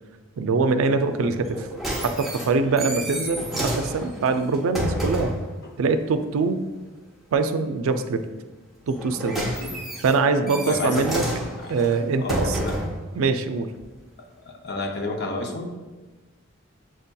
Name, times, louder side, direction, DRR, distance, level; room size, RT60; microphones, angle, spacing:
voice 1, 0.4-1.7 2.0-5.3 5.8-6.6 7.3-8.2 8.9-9.5 10.0-11.3 11.7-12.6 13.2-13.7, right 4 dB, 80° right, 9 dB, 0.4 m, -23 dB
sound 1, 1.4-5.5 8.9-13.0 13.8-13.9, right 1 dB, ahead, 0.5 m, -30 dB
voice 2, 10.7-11.1 11.6-11.7 12.2-12.8 14.5-15.7, left 2 dB, 50° left, 2 dB, 0.6 m, -30 dB
7.5 x 2.7 x 2.2 m, 1.2 s
head